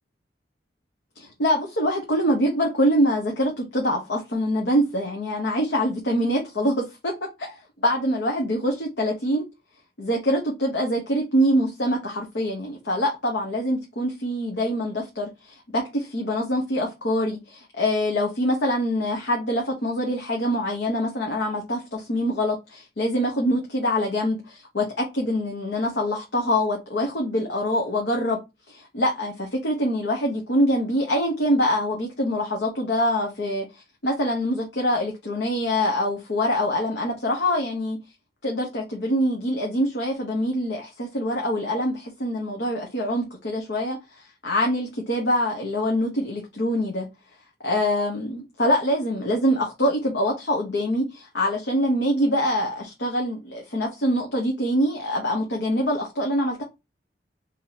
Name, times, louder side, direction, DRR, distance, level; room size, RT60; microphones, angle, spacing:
voice 1, 1.2-7.1 7.4-7.5 7.8-9.4 10.0-28.4 28.7-33.6 34.0-38.0 38.4-44.0 44.4-47.1 47.6-56.6, equal, 85° left, 0.9 m, -24 dB
2.9 x 2.7 x 3.9 m
head